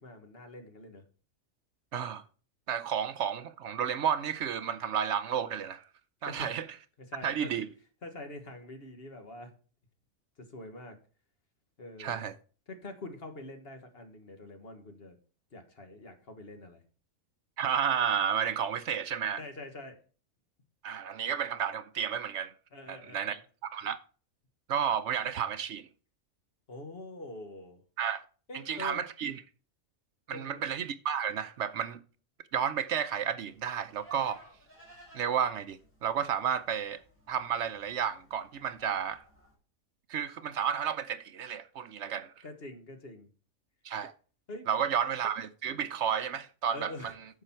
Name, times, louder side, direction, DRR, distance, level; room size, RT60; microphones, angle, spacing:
voice 1, 0.0-1.0 6.2-6.5 7.1-7.5 8.0-9.5 10.5-11.0 11.8-12.2 12.7-15.2 15.5-16.8 19.4-20.0 22.7-23.4 26.7-27.8 28.5-29.0 30.3-30.6 42.4-43.3 44.5-44.9 46.7-47.1, left 2 dB, 50° left, 1.6 m, -45 dB
voice 2, 1.9-2.2 2.7-5.8 6.2-6.6 7.2-7.7 12.0-12.3 17.6-19.4 20.8-22.5 22.9-24.0 24.7-25.9 28.0-28.2 28.7-29.3 30.3-32.0 32.5-34.4 35.1-37.0 37.3-39.2 40.1-42.3 43.8-44.1 44.7-47.1, right 8 dB, 65° right, 0.9 m, -32 dB
Livestock farm animals working animals, 33.5-39.5, right 1 dB, 10° left, 4.7 m, -57 dB
9.8 x 6.5 x 4.4 m
omnidirectional pair, 1.4 m